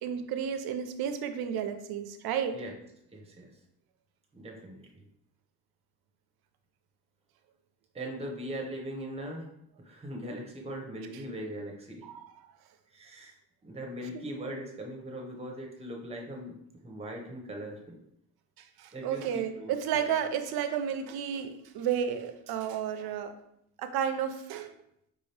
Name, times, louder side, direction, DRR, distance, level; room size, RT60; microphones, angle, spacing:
voice 1, 0.0-2.5 12.0-12.3 18.8-23.3 23.8-24.7, right 8 dB, 80° right, 8 dB, 0.6 m, -32 dB
voice 2, 3.1-3.5 4.3-5.1 7.9-9.5 9.8-12.0 12.9-13.4 13.6-16.5 16.8-18.0 18.9-20.1, right 1 dB, 15° right, 0 dB, 0.6 m, -40 dB
4.8 x 2.7 x 3.2 m, 0.75 s
cardioid pair, 180°, 36 cm